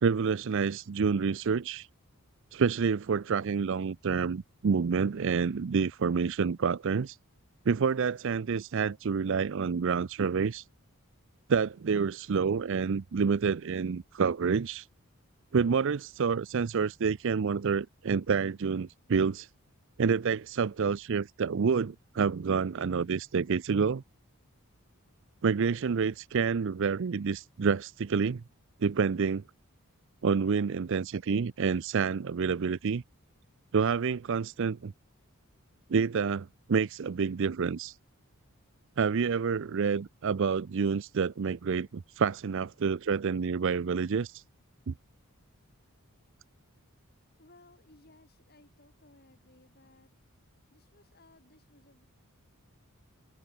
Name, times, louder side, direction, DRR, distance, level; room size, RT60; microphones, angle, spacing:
voice 1, 0.0-1.9 2.5-7.2 7.7-10.6 11.5-14.9 15.5-19.5 20.0-24.0 25.4-28.4 28.8-29.4 30.2-33.0 33.7-34.9 35.9-37.9 39.0-44.4 44.9-45.0, right 5 dB, 60° right, 0.5 m, -28 dB
voice 2, 47.4-50.1 50.7-52.1, left 2 dB, 45° left, 6.9 m, -60 dB
head